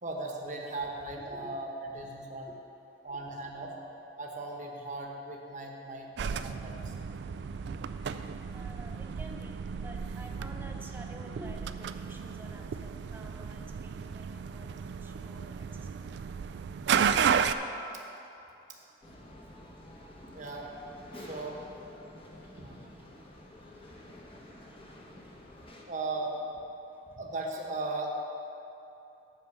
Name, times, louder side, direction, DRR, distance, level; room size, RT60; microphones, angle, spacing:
voice 1, 0.0-2.5 3.0-3.7 4.2-6.9 7.6-7.7 20.3-20.7 21.2-21.6 22.5-22.8 25.9-26.4 27.2-28.1, right 2 dB, 45° right, 0 dB, 1.0 m, -37 dB
voice 2, 2.2-2.6 3.1-3.2 8.5-14.7 15.0-15.7 16.0-16.1 18.7-19.2 24.3-24.4, equal, 10° right, 1 dB, 0.7 m, -50 dB
sound 1, 6.2-17.5, right 7 dB, 65° right, 0.3 m, -33 dB
sound 2, 19.0-25.8, left 1 dB, 30° left, 1.0 m, -49 dB
8.5 x 5.8 x 7.0 m, 2.9 s
head